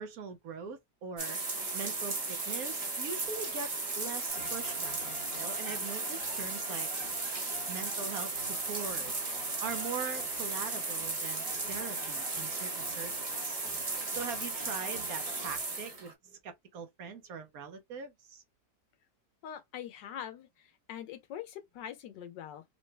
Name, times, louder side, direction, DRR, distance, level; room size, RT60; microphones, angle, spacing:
voice 1, 0.0-1.4 1.7-5.0 5.3-6.9 7.7-13.6 14.1-18.4, right 6 dB, 65° right, 1.0 m, -42 dB
sound 1, 1.2-16.1, right 3 dB, 35° right, 0.6 m, -35 dB
sound 2, 4.3-15.6, left 2 dB, 40° left, 1.0 m, -50 dB
voice 2, 19.4-22.6, left 9 dB, 90° left, 1.5 m, -43 dB
3.8 x 2.1 x 3.2 m
omnidirectional pair, 1.8 m